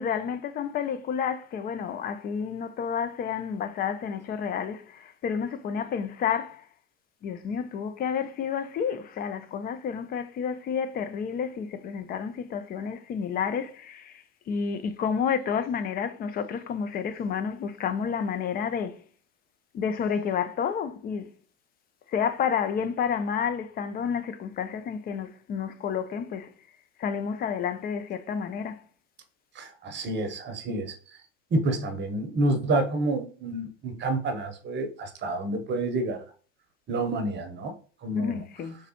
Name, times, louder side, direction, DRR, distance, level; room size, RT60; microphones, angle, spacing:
voice 1, 0.0-6.7 7.2-19.0 19.7-21.3 22.1-26.5 27.0-28.8 38.1-38.8, left 7 dB, 25° left, 0.4 m, -30 dB
voice 2, 29.5-31.2 31.5-36.2 36.9-37.7 38.0-38.4, right 2 dB, 30° right, 0.8 m, -28 dB
3.5 x 3.3 x 2.8 m
hypercardioid pair, 90°, 36 cm